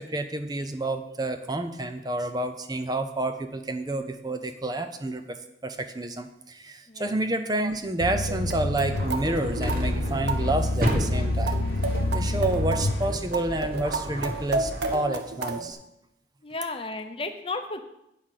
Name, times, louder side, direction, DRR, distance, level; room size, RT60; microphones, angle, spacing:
voice 1, 0.0-11.6 12.1-15.8, right 2 dB, 20° right, 8 dB, 0.5 m, -29 dB
sound 1, 8.0-13.1, left 2 dB, 85° left, 0.7 m, -28 dB
sound 2, 8.3-15.7, right 3 dB, 80° right, 0.9 m, -33 dB
sound 3, 8.9-15.0, equal, 55° right, 1.6 m, -33 dB
voice 2, 16.4-17.8, left 3 dB, 30° left, 7 dB, 0.8 m, -33 dB
8.9 x 5.7 x 6.5 m, 0.82 s
head